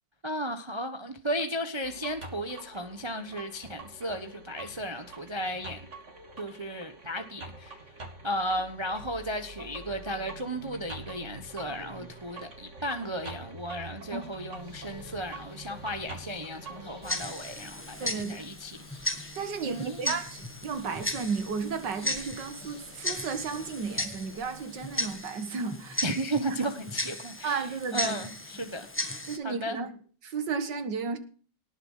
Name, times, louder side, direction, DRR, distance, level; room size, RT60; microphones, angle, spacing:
voice 1, 0.2-5.9 6.4-7.8 8.2-18.8 19.6-20.2 26.0-27.7 27.9-28.9 29.4-29.8, equal, 20° right, 7 dB, 1.1 m, -34 dB
sound 1, 1.8-17.2, right 2 dB, 40° right, 2.7 m, -45 dB
sound 2, 14.5-25.2, left 2 dB, 65° left, 4.1 m, -51 dB
Tick-tock, 17.0-29.4, left 1 dB, 10° left, 1.2 m, -36 dB
voice 2, 18.0-18.5 19.4-26.0 26.6-26.7 27.4-28.2 29.3-29.9 30.2-31.2, right 5 dB, 70° right, 9 dB, 2.2 m, -33 dB
18.5 x 7.9 x 5.7 m, 0.41 s
omnidirectional pair, 2.0 m